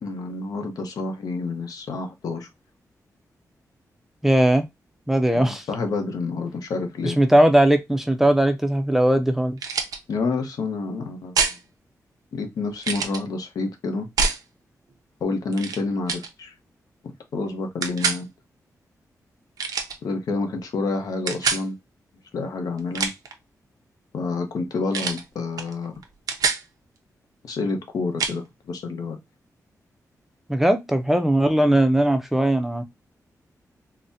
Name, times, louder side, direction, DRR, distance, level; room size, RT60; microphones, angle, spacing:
voice 1, 0.0-2.5 5.3-7.2 10.1-11.6 12.3-14.1 15.2-16.5 17.3-18.3 20.0-21.8 22.3-23.1 24.1-25.9 27.4-29.2, left 3 dB, 85° left, 0.8 m, -28 dB
voice 2, 4.2-4.7 5.1-5.7 7.0-9.6 30.5-32.8, right 1 dB, 5° right, 0.4 m, -19 dB
sound 1, 9.6-10.0 11.4-11.6 12.8-13.2 14.2-14.4 15.5-15.8 16.1-16.3 17.8-18.2 19.6-20.0 21.3-21.6 22.8-23.3 24.9-25.2 25.6-25.7 26.0-26.6 28.2-28.4, right 5 dB, 90° right, 0.6 m, -25 dB
3.9 x 2.1 x 2.5 m
wide cardioid pair, 170°, 6 cm